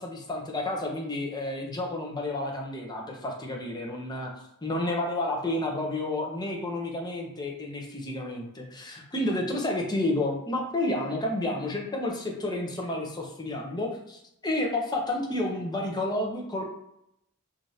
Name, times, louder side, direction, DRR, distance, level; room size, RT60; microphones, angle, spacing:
voice 1, 0.0-4.3 4.6-16.6, left 1 dB, 20° left, 0 dB, 0.7 m, -30 dB
4.8 x 2.5 x 2.7 m, 0.79 s
head